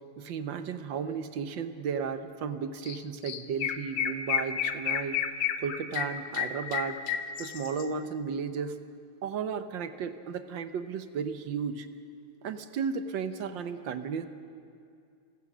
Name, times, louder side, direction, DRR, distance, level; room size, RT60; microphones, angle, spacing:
voice 1, 0.2-5.2 5.6-7.0 7.4-8.8 9.2-11.9 12.4-14.3, right 6 dB, 65° right, 9 dB, 1.6 m, -34 dB
Chirp tweet, 2.9-3.0 3.3-7.8, left 9 dB, 75° left, 1.7 m, -31 dB
29.5 x 16.0 x 6.2 m, 2.4 s
omnidirectional pair, 2.3 m